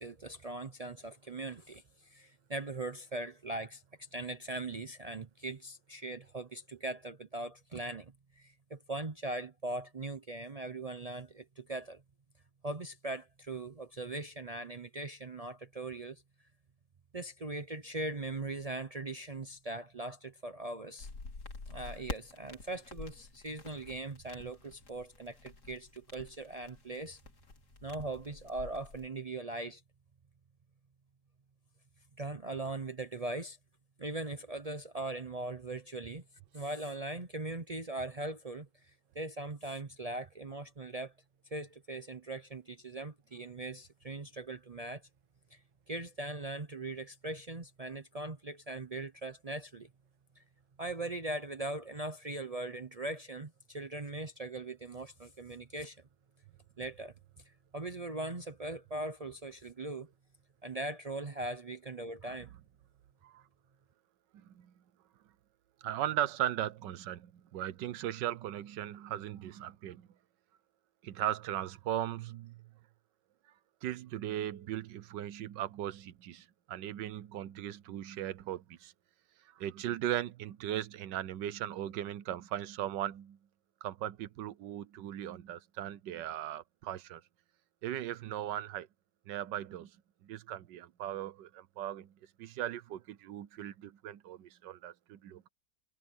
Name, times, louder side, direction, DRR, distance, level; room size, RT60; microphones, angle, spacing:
voice 1, 0.0-12.0 12.6-16.2 17.1-21.1 21.7-27.2 27.8-29.8 32.2-33.6 34.0-36.2 36.5-41.1 41.5-45.1 45.5-45.6 45.9-49.9 50.4-50.5 50.8-56.0 56.8-57.1 57.4-60.1 60.6-62.5, right 2 dB, 55° right, 0.4 m, -40 dB
sound 1, 21.0-29.1, left 3 dB, 65° left, 3.3 m, -48 dB
voice 2, 64.3-64.7 65.8-70.1 71.0-72.7 73.8-78.9 79.4-83.4 83.8-87.2 87.8-88.9 89.3-90.0 90.2-92.1 92.4-95.5, right 12 dB, 85° right, 1.5 m, -38 dB
omnidirectional pair, 1.9 m